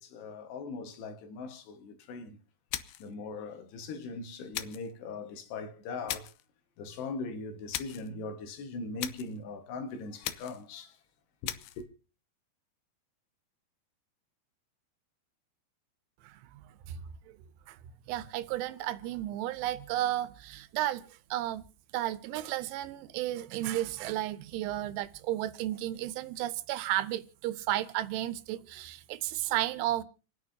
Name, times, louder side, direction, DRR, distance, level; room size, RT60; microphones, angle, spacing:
voice 1, 0.0-2.4 3.0-6.3 6.8-11.0 11.4-11.9, left 3 dB, 70° left, 3.3 m, -40 dB
sound 1, 2.7-3.1 4.5-4.9 6.1-6.5 7.7-8.1 9.0-9.4 10.2-10.7 11.4-11.8, left 14 dB, 85° left, 2.2 m, -38 dB
voice 2, 16.2-17.0 17.7-17.8 18.1-21.6 21.9-30.0, right 14 dB, 85° right, 3.2 m, -33 dB
29.0 x 9.8 x 2.7 m
omnidirectional pair, 5.4 m